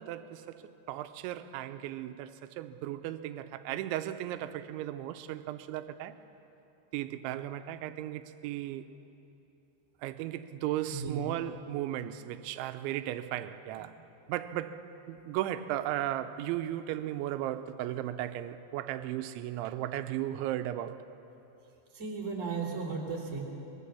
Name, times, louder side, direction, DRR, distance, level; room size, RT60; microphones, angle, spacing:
voice 1, 0.0-6.2 6.9-8.9 10.0-14.0 14.3-21.0, right 13 dB, 90° right, 3.1 m, -36 dB
voice 2, 10.9-11.3 13.7-14.0 21.9-23.4, right 4 dB, 20° right, 2.8 m, -36 dB
24.0 x 21.5 x 7.0 m
omnidirectional pair, 5.3 m